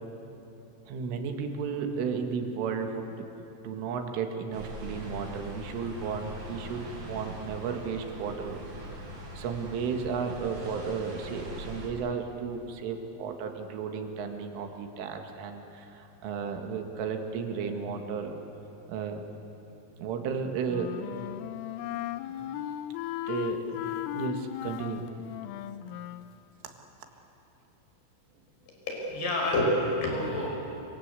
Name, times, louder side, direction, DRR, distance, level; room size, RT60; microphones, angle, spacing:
voice 1, 0.9-3.3 3.6-8.8 9.3-18.4 18.9-19.2 20.0-20.9 23.3-23.8 24.1-25.0, right 6 dB, 80° right, 4 dB, 4.3 m, -34 dB
sound 1, 4.5-11.9, right 1 dB, 50° right, 8.5 m, -42 dB
Wind instrument woodwind instrument, 20.7-26.3, left 12 dB, 85° left, 3.4 m, -36 dB
voice 2, 28.7-30.5, left 1 dB, 55° left, -1 dB, 7.5 m, -28 dB
27.0 x 25.5 x 8.2 m, 2.9 s
omnidirectional pair, 5.7 m